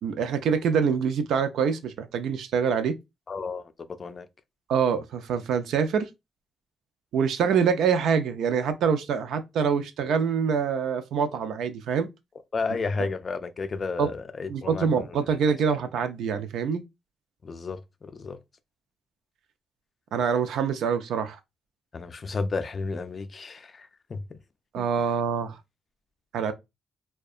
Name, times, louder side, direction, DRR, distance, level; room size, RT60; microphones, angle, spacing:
voice 1, 0.0-2.9 4.7-6.1 7.1-12.1 14.0-14.1 14.5-16.8 20.1-21.4 24.7-25.6 26.3-26.5, right 6 dB, 80° right, 0.4 m, -25 dB
voice 2, 3.3-3.7 4.0-4.3 12.5-15.2 17.4-18.4 21.9-24.4 24.8-24.9, left 4 dB, 40° left, 0.4 m, -32 dB
2.7 x 2.2 x 2.3 m
cardioid pair, 100°, 0 cm